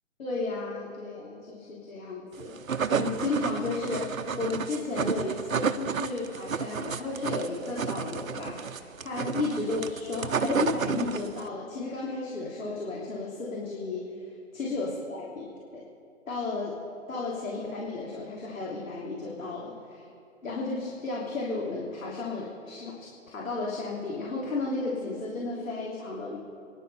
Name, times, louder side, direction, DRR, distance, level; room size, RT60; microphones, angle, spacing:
voice 1, 0.2-14.3 14.5-15.8 16.3-16.8 17.1-20.0 20.4-26.4, left 3 dB, 75° left, -4 dB, 3.3 m, -33 dB
sound 1, 2.4-11.5, right 6 dB, 80° right, 0.9 m, -31 dB
29.5 x 10.5 x 4.2 m, 2.5 s
figure-of-eight pair, 135°, 40 cm